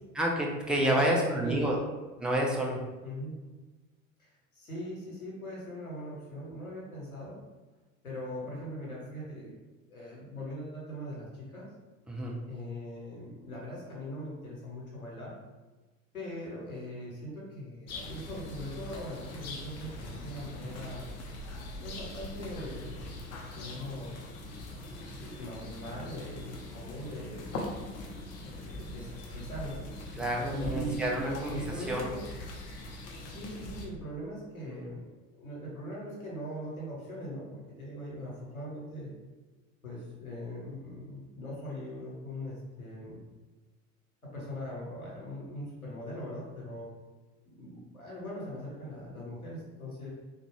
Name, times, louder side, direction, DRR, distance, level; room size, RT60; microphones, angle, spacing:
voice 1, 0.1-1.8 2.2-2.8 12.1-12.4 30.1-32.1 34.7-34.9, right 1 dB, ahead, -2 dB, 0.3 m, -29 dB
voice 2, 0.8-1.7 3.0-3.4 4.2-7.4 8.0-9.6 9.9-11.7 12.5-15.3 16.1-21.1 21.8-23.0 23.5-24.1 25.1-27.5 28.4-29.9 30.5-32.2 33.2-39.1 39.8-43.2 44.2-46.9 47.4-50.1, equal, 90° left, -5 dB, 1.0 m, -41 dB
sound 1, 17.9-33.9, left 1 dB, 40° left, 0.7 m, -42 dB
3.5 x 2.3 x 3.1 m, 1.2 s
figure-of-eight pair, 70°, 41 cm